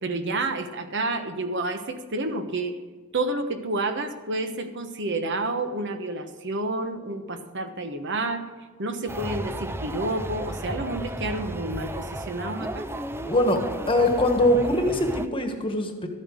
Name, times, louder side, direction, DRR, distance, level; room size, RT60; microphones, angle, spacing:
voice 1, 0.0-2.8 3.1-8.4 8.8-12.9, right 2 dB, 55° right, 7 dB, 1.2 m, -29 dB
sound 1, 9.1-15.3, right 1 dB, 10° right, 0.4 m, -34 dB
voice 2, 13.2-13.6 13.9-16.1, left 1 dB, 25° left, 4 dB, 1.4 m, -22 dB
13.0 x 8.8 x 6.4 m, 1.4 s
head